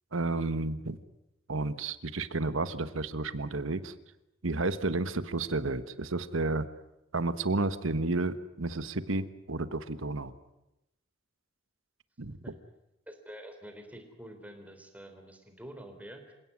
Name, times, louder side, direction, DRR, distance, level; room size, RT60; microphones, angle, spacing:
voice 1, 0.1-1.0 1.5-3.9 4.4-6.7 7.1-10.3 12.2-12.4, right 2 dB, 85° right, 13 dB, 1.3 m, -31 dB
voice 2, 13.1-16.3, right 1 dB, 5° right, 5 dB, 3.8 m, -47 dB
27.5 x 17.0 x 9.7 m, 0.90 s
head